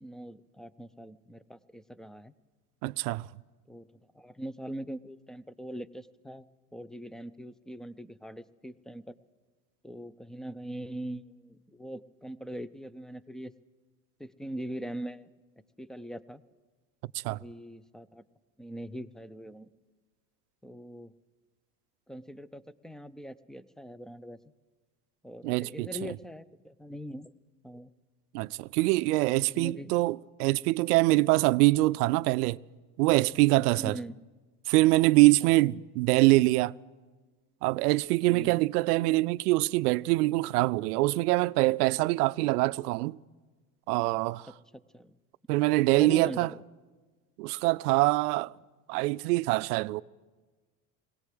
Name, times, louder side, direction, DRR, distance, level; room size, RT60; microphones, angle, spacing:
voice 1, 0.0-2.3 3.7-6.5 6.7-9.1 9.8-13.5 14.2-15.3 15.8-16.4 17.3-18.2 18.6-19.7 20.6-21.1 22.1-24.4 25.2-27.3 27.6-27.9 29.3-29.9 33.8-34.2 38.3-38.6 44.7-45.2 45.9-46.6, equal, ahead, 0.5 m, -42 dB
voice 2, 2.8-3.3 17.2-17.4 25.4-26.1 28.3-32.6 33.0-34.0 34.7-36.7 37.6-43.2 43.9-44.5 45.5-46.5 47.4-48.5 48.9-50.0, right 20 dB, 80° right, 0.6 m, -24 dB
20.5 x 17.5 x 7.8 m
hypercardioid pair, 85°, 46 cm